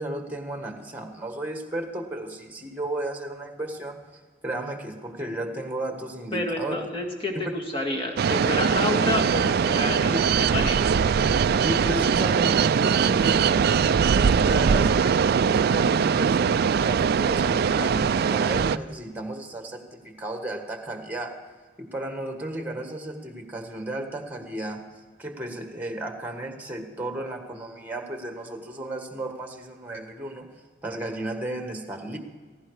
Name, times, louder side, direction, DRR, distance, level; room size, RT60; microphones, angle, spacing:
voice 1, 0.0-4.0 4.4-6.9 7.3-7.4 10.1-10.2 10.9-11.0 11.6-13.6 14.1-21.3 21.8-24.8 25.2-30.5 30.8-32.2, right 1 dB, 10° right, 5 dB, 1.6 m, -34 dB
voice 2, 6.3-10.1 10.5-10.9, left 2 dB, 30° left, 0 dB, 2.1 m, -29 dB
sound 1, 8.2-18.8, right 6 dB, 55° right, 0.4 m, -21 dB
17.0 x 15.5 x 4.9 m, 1.4 s
head